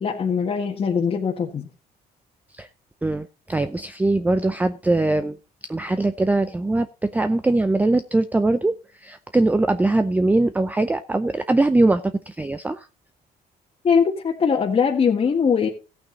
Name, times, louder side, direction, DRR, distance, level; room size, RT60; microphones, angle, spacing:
voice 1, 0.0-1.7 13.8-15.7, left 6 dB, 35° left, -2 dB, 1.8 m, -21 dB
voice 2, 3.0-5.4 5.7-12.9, right 2 dB, 10° right, 11 dB, 0.5 m, -21 dB
14.5 x 8.8 x 4.1 m, 0.32 s
cardioid pair, 110°, 17 cm